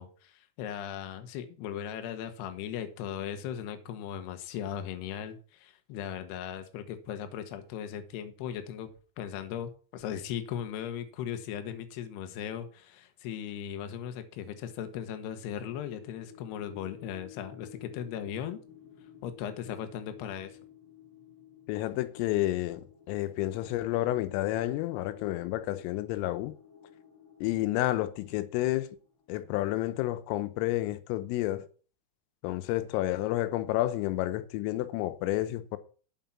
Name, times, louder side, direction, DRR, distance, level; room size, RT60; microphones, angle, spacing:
voice 1, 0.0-8.9 9.2-18.6 19.2-20.6, left 9 dB, 70° left, 2.9 m, -38 dB
sound 1, 15.2-29.6, left 9 dB, 5° right, 5.1 m, -53 dB
voice 2, 21.7-26.5 27.4-29.0 29.3-31.6 32.4-35.8, left 16 dB, 90° left, 3.4 m, -30 dB
9.2 x 7.4 x 5.9 m
omnidirectional pair, 5.8 m